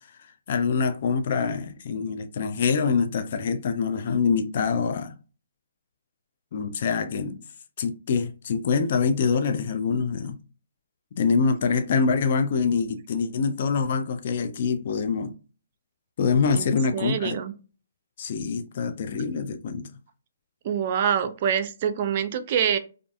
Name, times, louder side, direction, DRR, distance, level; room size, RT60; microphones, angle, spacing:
voice 1, 0.5-5.1 6.5-7.4 7.8-10.4 11.1-15.3 16.2-17.4 18.2-19.9, left 5 dB, 50° left, 0.3 m, -25 dB
voice 2, 16.9-17.5 20.6-22.8, right 8 dB, 45° right, 0.4 m, -25 dB
2.5 x 2.4 x 2.3 m
hypercardioid pair, 140°, 0 cm